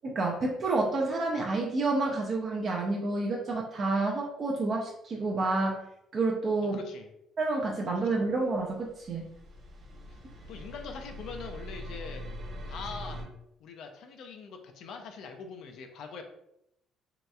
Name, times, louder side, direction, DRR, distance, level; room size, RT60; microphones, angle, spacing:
voice 1, 0.0-5.8 6.1-6.8 7.4-9.3, right 3 dB, 40° right, -1 dB, 0.4 m, -29 dB
voice 2, 6.6-7.1 10.5-12.2 12.7-13.2 13.6-16.2, left 5 dB, 65° left, 5 dB, 0.4 m, -42 dB
sound 1, 8.5-13.2, equal, 55° right, 1.2 m, -42 dB
3.1 x 2.8 x 2.3 m, 0.80 s
cardioid pair, 135°, 0 cm